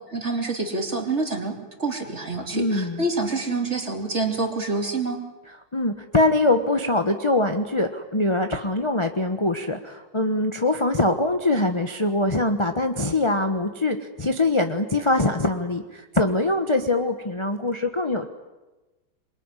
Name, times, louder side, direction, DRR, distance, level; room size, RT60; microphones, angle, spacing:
voice 1, 0.1-5.2, right 3 dB, 35° right, 3 dB, 3.3 m, -27 dB
voice 2, 2.5-3.0 5.7-18.3, left 2 dB, 20° left, 5 dB, 1.1 m, -23 dB
26.5 x 22.5 x 9.9 m, 1.1 s
omnidirectional pair, 2.2 m